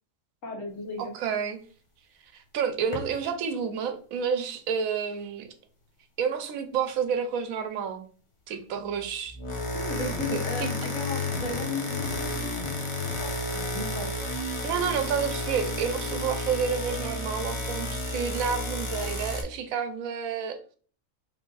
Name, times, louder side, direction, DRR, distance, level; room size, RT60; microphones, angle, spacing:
voice 1, 0.4-1.1 9.7-12.7 13.2-14.1, left 3 dB, 70° left, 1.5 m, -35 dB
voice 2, 1.0-1.6 2.3-5.5 6.2-8.1 8.5-9.4 10.3-10.7 14.6-20.6, right 7 dB, 85° right, 1.0 m, -30 dB
sound 1, 2.9-3.2 9.2-19.4, left 1 dB, 30° left, 0.6 m, -32 dB
3.3 x 2.5 x 3.7 m
omnidirectional pair, 1.4 m